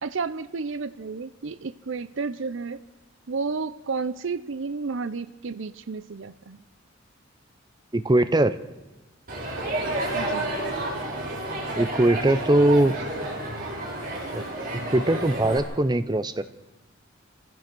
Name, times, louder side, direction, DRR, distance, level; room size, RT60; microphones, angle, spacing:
voice 1, 0.0-2.8 3.3-6.6 10.1-10.5, right 4 dB, 65° right, 13 dB, 0.6 m, -32 dB
voice 2, 7.9-8.5 11.8-12.9 14.3-14.4 14.9-16.4, right 1 dB, 20° right, 12 dB, 0.7 m, -21 dB
Crowd, 9.3-15.6, right 1 dB, 45° right, 5.5 m, -30 dB
27.0 x 15.5 x 6.2 m, 1.1 s
head